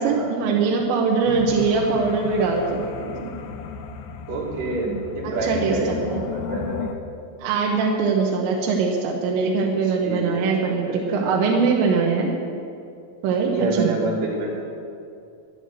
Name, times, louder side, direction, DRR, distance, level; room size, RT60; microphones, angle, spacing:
voice 1, 0.0-3.3 5.2-6.2 7.4-12.3 13.2-13.9, right 4 dB, 90° right, 0 dB, 3.3 m, -22 dB
sound 1, 1.2-7.0, left 6 dB, 85° left, 2.0 m, -34 dB
voice 2, 4.3-6.9 9.8-11.3 13.5-14.6, right 2 dB, 65° right, -4 dB, 4.4 m, -28 dB
11.0 x 9.8 x 8.0 m, 2.5 s
omnidirectional pair, 5.1 m